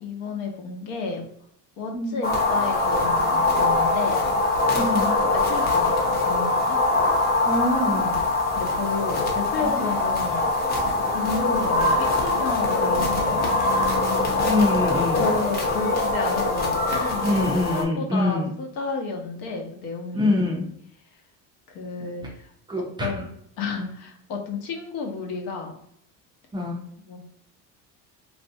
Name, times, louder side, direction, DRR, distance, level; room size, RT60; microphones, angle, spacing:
voice 1, 0.0-1.2 1.8-4.2 4.7-6.0 6.2-6.8 8.0-8.2 8.6-10.5 11.1-13.7 15.2-20.4 21.7-22.5 22.8-23.3 23.6-25.7 27.1-27.2, left 4 dB, 75° left, 2 dB, 0.9 m, -32 dB
sound 1, 2.2-17.8, left 2 dB, 25° left, 0.6 m, -23 dB
voice 2, 4.7-5.2 7.4-8.1 9.6-9.9 14.4-15.3 17.2-18.5 20.1-20.7 22.7-23.1 26.5-26.8, left 2 dB, 15° right, -2 dB, 0.4 m, -24 dB
3.2 x 2.6 x 2.6 m, 0.71 s
cardioid pair, 150°, 36 cm